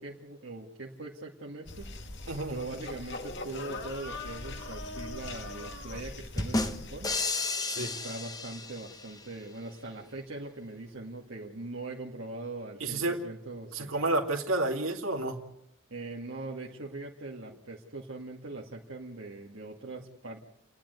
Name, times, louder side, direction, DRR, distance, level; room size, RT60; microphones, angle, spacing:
voice 1, 0.0-1.9 2.5-7.1 7.8-14.0 15.9-20.5, right 2 dB, 65° right, -3 dB, 2.1 m, -41 dB
sound 1, 1.7-7.2, left 2 dB, 60° left, 2.0 m, -41 dB
sound 2, 6.4-9.2, left 3 dB, 20° left, 1.1 m, -32 dB
voice 2, 12.8-13.2 13.7-15.4, right 2 dB, 85° right, 0 dB, 2.3 m, -30 dB
30.0 x 10.5 x 9.3 m, 0.75 s
head